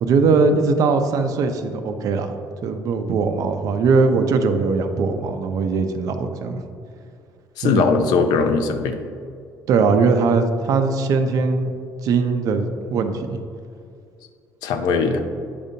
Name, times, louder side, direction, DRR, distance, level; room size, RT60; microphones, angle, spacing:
voice 1, 0.0-2.4 2.6-6.6 7.6-7.8 9.7-11.7 12.0-13.4, right 4 dB, 55° right, 7 dB, 0.5 m, -20 dB
voice 2, 7.6-9.0 14.6-15.2, left 4 dB, 80° left, 7 dB, 0.6 m, -19 dB
8.5 x 5.1 x 2.7 m, 2.4 s
cardioid pair, 145°, 7 cm